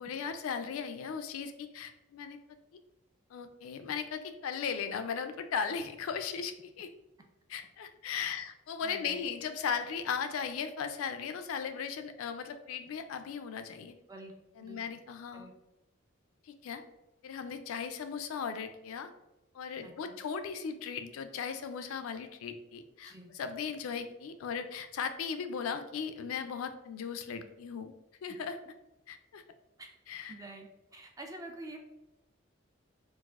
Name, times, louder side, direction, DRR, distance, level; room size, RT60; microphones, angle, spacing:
voice 1, 0.0-2.4 3.3-6.9 7.5-13.9 14.6-15.5 16.5-16.8 17.2-19.1 19.5-27.9 28.2-28.6 29.1-29.4 30.1-30.3, left 6 dB, 80° left, 9 dB, 0.3 m, -37 dB
voice 2, 8.8-9.2 14.1-14.3 14.6-14.8 15.3-15.5 19.8-20.2 23.0-23.3 30.3-31.8, right 2 dB, 15° right, 3 dB, 0.3 m, -47 dB
3.9 x 2.5 x 2.3 m, 0.95 s
head